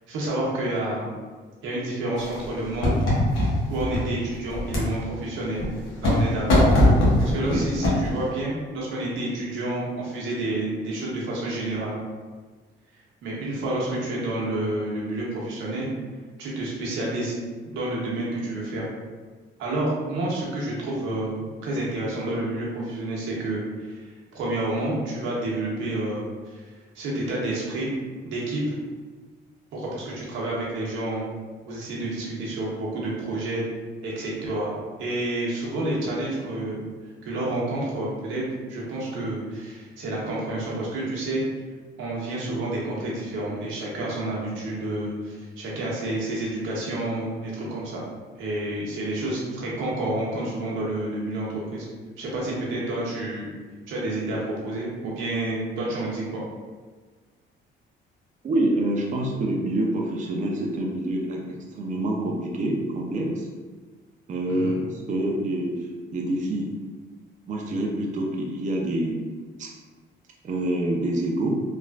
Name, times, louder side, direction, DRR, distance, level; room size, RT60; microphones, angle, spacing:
voice 1, 0.1-1.1 1.6-3.0 3.7-5.6 6.0-6.7 7.2-11.9 13.2-15.9 16.4-17.3 17.6-18.9 19.6-24.0 24.3-27.9 28.2-28.8 29.7-31.2 31.6-33.7 34.0-34.7 35.0-36.8 37.2-41.4 42.0-48.0 48.4-51.9 52.2-53.5 53.9-56.4 64.5-64.8, right 1 dB, 90° right, -4 dB, 0.8 m, -29 dB
sound 1, 2.2-4.0 4.5-4.9 5.6-6.2 6.5-8.1, left 1 dB, 85° left, 0.9 m, -20 dB
voice 2, 58.4-63.5 64.3-66.7 67.5-69.2 69.6-69.7 70.4-71.6, right 1 dB, 40° right, -1 dB, 0.5 m, -26 dB
3.2 x 2.3 x 2.3 m, 1.4 s
cardioid pair, 90°, 20 cm